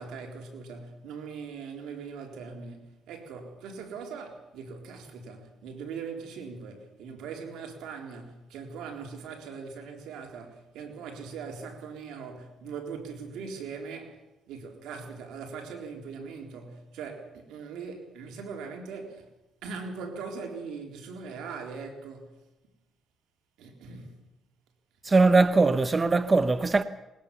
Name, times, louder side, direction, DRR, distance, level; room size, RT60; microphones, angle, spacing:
voice 1, 0.0-19.3 19.6-22.3 23.6-24.1, right 5 dB, 90° right, 3.9 m, -40 dB
voice 2, 25.0-26.8, right 3 dB, 30° right, 1.0 m, -21 dB
20.5 x 20.0 x 7.0 m
cardioid pair, 90°, 0 cm